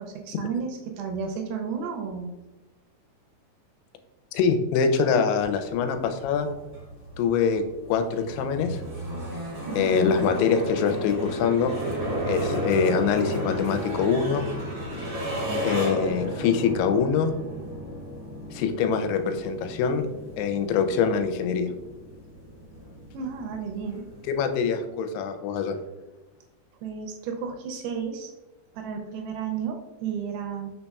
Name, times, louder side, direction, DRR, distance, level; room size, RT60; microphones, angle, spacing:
voice 1, 0.0-2.3 9.7-10.0 23.1-24.0 26.8-28.3 28.8-30.7, right 6 dB, 80° right, 4 dB, 2.3 m, -32 dB
voice 2, 4.3-6.5 7.2-8.8 9.8-11.7 12.2-14.5 15.6-17.3 18.5-20.1 20.4-21.7 24.3-25.8, left 6 dB, 90° left, 7 dB, 2.6 m, -24 dB
sound 1, 5.4-24.7, equal, 55° right, 1.3 m, -34 dB
sound 2, 9.9-15.2, left 2 dB, 55° left, 1.3 m, -45 dB
5.4 x 4.1 x 2.3 m, 1.1 s
omnidirectional pair, 4.6 m